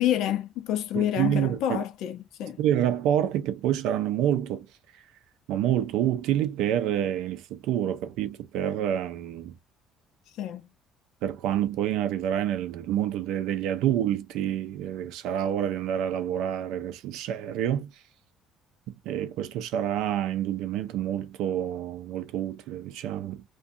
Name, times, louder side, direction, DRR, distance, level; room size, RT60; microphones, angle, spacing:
voice 1, 0.0-2.6 10.3-10.7, left 11 dB, 60° left, 0.6 m, -28 dB
voice 2, 0.9-1.8 2.6-4.7 5.5-9.6 11.2-17.9 18.9-23.4, right 11 dB, 70° right, 0.4 m, -28 dB
2.5 x 2.2 x 2.5 m
cardioid pair, 175°, 0 cm